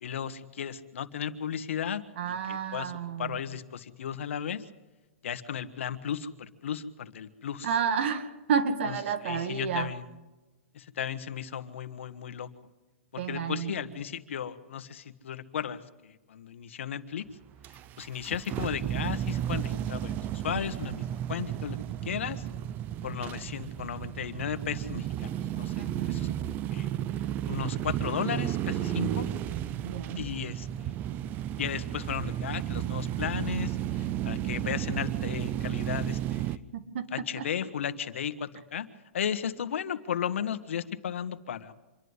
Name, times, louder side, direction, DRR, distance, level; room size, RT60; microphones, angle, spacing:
voice 1, 0.0-2.0 2.5-2.9 3.2-4.6 5.2-7.7 8.8-9.0 9.2-10.0 10.7-12.5 13.1-17.3 18.0-22.4 23.0-26.9 27.5-29.2 30.1-30.7 31.6-36.6 37.1-38.9 39.1-41.7, left 8 dB, 75° left, 11 dB, 1.6 m, -35 dB
voice 2, 2.2-3.4 7.6-9.9 13.2-13.7 25.7-26.2 29.8-30.3 36.7-37.5, right 6 dB, 60° right, 11 dB, 2.1 m, -31 dB
sound 1, 17.6-36.6, right 11 dB, 25° right, 0.6 m, -33 dB
26.5 x 11.5 x 9.9 m, 1.1 s
hypercardioid pair, 145°, 7 cm